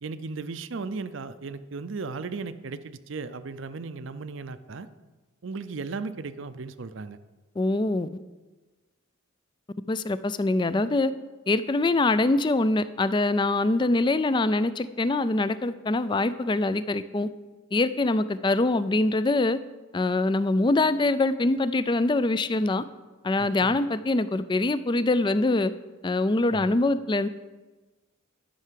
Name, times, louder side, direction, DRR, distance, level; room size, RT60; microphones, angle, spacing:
voice 1, 0.0-4.9 5.4-7.2 23.4-23.8 26.5-26.7, right 4 dB, 60° right, 13 dB, 0.5 m, -36 dB
voice 2, 7.6-8.1 9.9-11.1 11.5-17.3 17.7-19.6 19.9-22.8 23.2-25.7 26.0-27.3, left 2 dB, 20° left, 14 dB, 0.3 m, -24 dB
11.5 x 5.6 x 7.5 m, 1.2 s
head